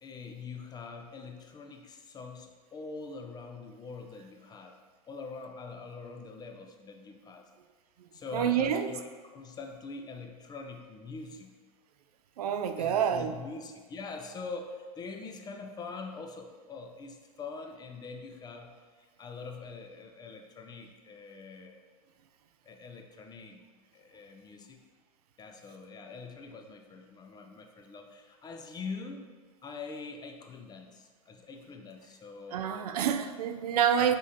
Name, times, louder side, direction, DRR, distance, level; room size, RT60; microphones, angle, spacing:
voice 1, 0.0-4.8 5.1-7.5 8.1-11.5 12.8-21.9 22.6-23.6 23.9-24.8 25.4-29.3 29.6-33.0 34.0-34.2, left 4 dB, 20° left, 4 dB, 0.4 m, -44 dB
voice 2, 8.0-8.9 12.4-13.4 32.5-34.2, right 8 dB, 80° right, 9 dB, 0.4 m, -28 dB
5.2 x 3.6 x 2.7 m, 1.4 s
hypercardioid pair, 100°, 19 cm